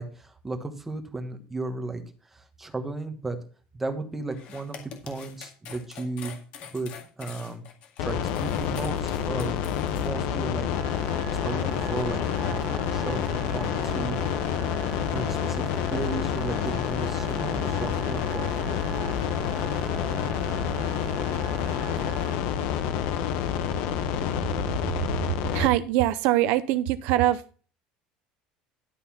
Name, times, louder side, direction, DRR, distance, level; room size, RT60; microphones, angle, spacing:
voice 1, 0.0-3.4 3.7-6.4 6.6-7.6 8.0-9.6 9.9-10.7 10.9-14.2 15.1-15.6 15.9-18.5, right 3 dB, 10° right, 5 dB, 1.3 m, -35 dB
sound 1, 4.3-10.1, left 8 dB, 45° left, 2.0 m, -44 dB
sound 2, 8.0-25.7, left 9 dB, 65° left, 1.1 m, -28 dB
sound 3, 10.7-22.4, right 5 dB, 35° right, 2.4 m, -40 dB
voice 2, 25.5-27.7, right 14 dB, 60° right, 13 dB, 0.5 m, -23 dB
11.5 x 4.1 x 7.0 m, 0.39 s
cardioid pair, 170°, 3 cm